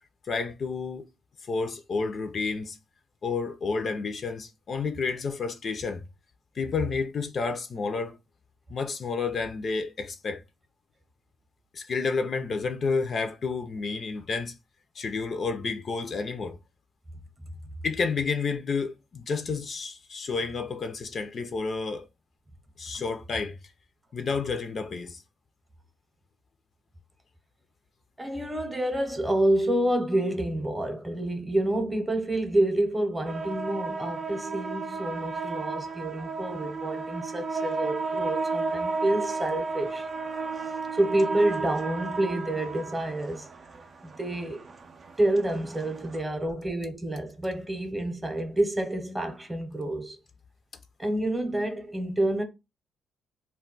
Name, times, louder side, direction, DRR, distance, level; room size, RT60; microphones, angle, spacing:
voice 1, 0.3-1.1 1.5-2.8 3.2-6.0 6.6-8.2 8.7-10.4 11.7-14.5 15.0-16.6 17.8-22.1 22.8-23.6 24.1-25.2, left 4 dB, 50° left, 0.4 m, -30 dB
voice 2, 28.2-40.0 40.9-43.5 44.0-44.7 45.2-50.2 51.0-52.4, right 1 dB, 15° right, 0.7 m, -28 dB
sound 1, 33.2-46.2, right 4 dB, 45° right, 0.4 m, -33 dB
2.2 x 2.1 x 3.7 m
cardioid pair, 90°, 0 cm